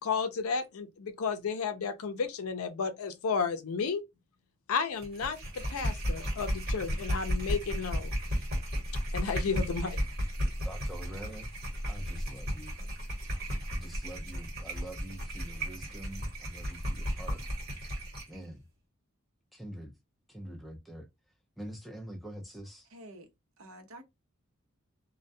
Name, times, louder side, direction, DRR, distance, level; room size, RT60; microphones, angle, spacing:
voice 1, 0.0-4.0 4.7-8.1 9.1-10.0, left 5 dB, 90° left, 0.5 m, -32 dB
sound 1, 5.0-18.4, equal, 50° right, 1.2 m, -34 dB
voice 2, 10.6-11.5 11.9-12.8 13.7-17.4 18.3-18.6 19.5-19.9 20.3-21.1 21.6-22.9, right 1 dB, ahead, 0.5 m, -45 dB
voice 3, 22.9-23.3 23.6-24.0, right 1 dB, 75° right, 0.7 m, -48 dB
2.2 x 2.2 x 2.6 m
head